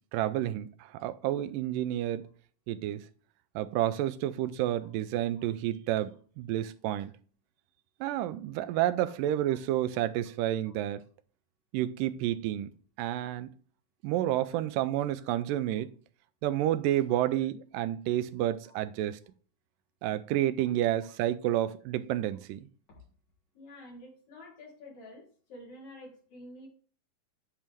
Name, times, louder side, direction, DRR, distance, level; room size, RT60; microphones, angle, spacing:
voice 1, 0.1-2.3 2.7-3.1 3.6-7.1 8.0-11.0 11.7-12.7 13.0-13.6 14.0-15.9 16.4-19.2 20.0-22.7, right 13 dB, 80° right, 2.2 m, -30 dB
voice 2, 16.8-17.2 18.6-18.7 20.6-20.7 21.1-21.2 22.9-23.0 23.5-26.7, left 1 dB, 50° left, 4.7 m, -50 dB
8.7 x 4.6 x 3.5 m
omnidirectional pair, 4.1 m